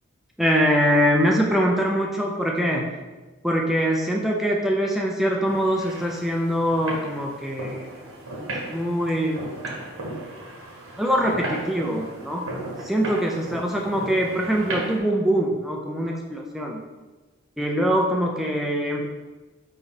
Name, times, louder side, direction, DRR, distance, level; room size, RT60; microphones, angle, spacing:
voice 1, 0.4-2.9 3.4-7.9 8.7-9.4 11.0-12.4 12.8-16.8 17.6-19.1, equal, ahead, -1 dB, 0.5 m, -23 dB
sound 1, 5.5-15.0, right 1 dB, 80° right, 1.6 m, -35 dB
5.0 x 4.7 x 4.2 m, 1.2 s
head